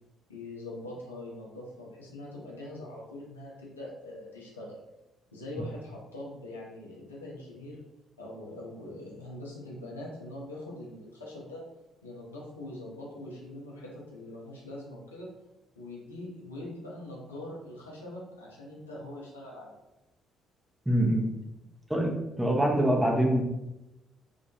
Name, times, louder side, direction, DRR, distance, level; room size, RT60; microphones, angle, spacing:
voice 1, 0.3-4.8 5.3-7.8 8.2-11.6 12.0-15.3 15.8-19.7, left 1 dB, 80° left, -4 dB, 0.5 m, -43 dB
voice 2, 20.9-21.3 21.9-22.1 22.4-23.4, right 1 dB, 5° right, 0 dB, 0.5 m, -24 dB
2.2 x 2.1 x 2.8 m, 0.96 s
figure-of-eight pair, 45°, 0 cm